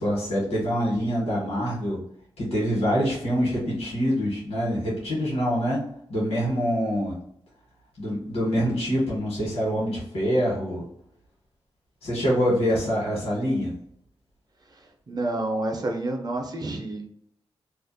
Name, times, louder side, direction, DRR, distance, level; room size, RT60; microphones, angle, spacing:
voice 1, 0.0-2.0 2.4-5.8 6.1-7.2 8.0-10.9 12.0-13.7, equal, 85° left, -5 dB, 1.1 m, -25 dB
voice 2, 14.7-17.0, right 2 dB, 40° right, 2 dB, 0.6 m, -29 dB
2.4 x 2.1 x 2.6 m, 0.71 s
cardioid pair, 65°, 10 cm